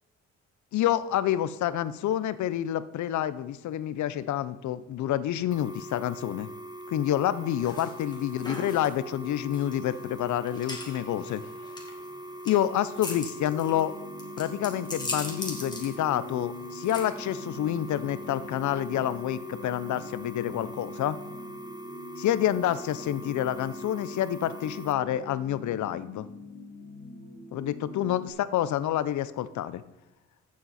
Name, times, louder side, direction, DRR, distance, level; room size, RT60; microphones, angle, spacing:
voice 1, 0.7-6.5 6.9-11.5 12.4-13.9 14.4-21.2 22.2-26.3 27.5-29.8, left 11 dB, 70° left, 16 dB, 0.7 m, -28 dB
sound 1, 5.5-24.9, right 1 dB, 15° right, 0.9 m, -42 dB
sound 2, 7.6-18.9, left 2 dB, 15° left, 2.3 m, -41 dB
sound 3, 13.5-28.3, left 3 dB, 40° left, 2.6 m, -45 dB
14.0 x 7.5 x 4.2 m, 1.1 s
cardioid pair, 90°, 30 cm